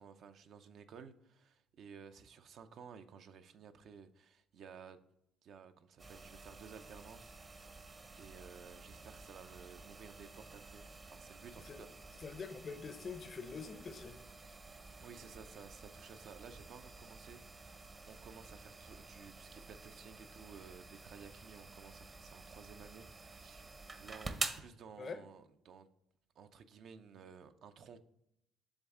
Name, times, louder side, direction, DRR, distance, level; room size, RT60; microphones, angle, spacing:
voice 1, 0.0-5.0 5.4-7.8 8.2-12.2 15.0-25.9 26.4-28.0, right 6 dB, 65° right, 0.5 m, -55 dB
sound 1, 6.0-24.6, right 3 dB, 30° right, 0.7 m, -49 dB
voice 2, 12.2-14.2 25.0-25.2, left 5 dB, 45° left, 0.6 m, -45 dB
7.2 x 3.5 x 3.6 m
cardioid pair, 90°, 0 cm